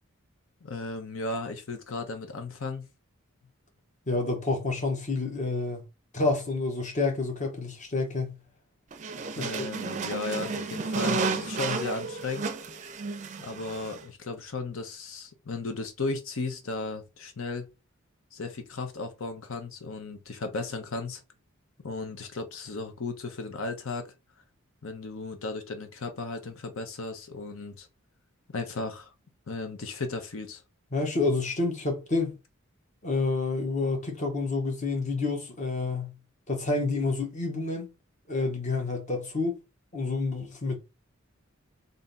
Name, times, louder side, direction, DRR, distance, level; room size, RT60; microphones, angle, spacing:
voice 1, 0.6-2.9 9.4-12.5 13.4-17.7 18.3-21.2 21.8-24.1 24.8-27.9 28.5-29.1 29.5-30.6, left 3 dB, 80° left, 0.8 m, -35 dB
voice 2, 4.1-5.8 6.1-8.4 9.4-9.7 30.9-32.3 33.0-36.1 36.5-37.9 38.3-39.6 39.9-40.8, left 3 dB, 35° left, 1.1 m, -28 dB
sound 1, 8.9-14.0, right 4 dB, 35° right, 0.4 m, -32 dB
3.5 x 2.7 x 4.0 m
head